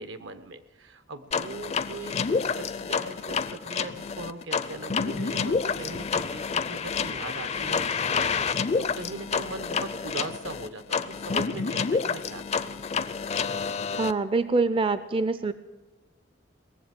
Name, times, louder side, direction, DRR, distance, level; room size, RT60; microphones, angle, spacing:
voice 1, 0.0-12.7, right 2 dB, 75° right, 11 dB, 1.0 m, -40 dB
sound 1, 1.3-14.1, left 5 dB, 35° left, 0.5 m, -29 dB
voice 2, 14.0-15.5, right 3 dB, 30° right, 13 dB, 0.4 m, -25 dB
19.0 x 7.5 x 9.0 m, 1.1 s
head